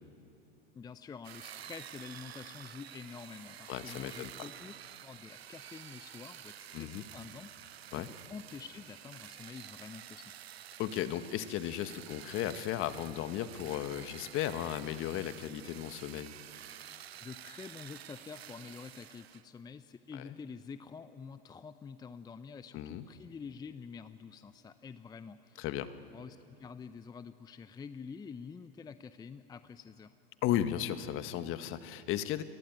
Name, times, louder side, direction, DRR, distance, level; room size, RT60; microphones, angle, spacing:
voice 1, 0.7-4.7 5.0-10.3 17.2-25.7 26.1-30.1, left 5 dB, 15° left, 12 dB, 0.6 m, -48 dB
sound 1, 1.2-19.5, right 10 dB, 85° right, 0.9 m, -50 dB
voice 2, 3.7-4.3 6.7-7.0 7.9-8.1 10.8-16.3 22.7-23.0 25.6-25.9 30.4-32.4, left 12 dB, 40° left, 11 dB, 1.4 m, -35 dB
28.5 x 21.0 x 9.4 m, 2.8 s
hypercardioid pair, 100°, 30 cm